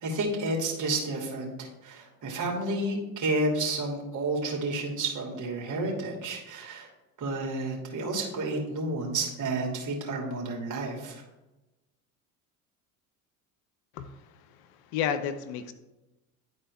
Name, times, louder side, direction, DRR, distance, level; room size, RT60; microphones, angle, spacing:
voice 1, 0.0-6.9 7.2-11.2, right 2 dB, 40° right, -1 dB, 2.7 m, -31 dB
voice 2, 13.9-15.7, left 8 dB, 65° left, 10 dB, 0.8 m, -33 dB
11.0 x 4.3 x 3.5 m, 1.0 s
hypercardioid pair, 70°, 45 cm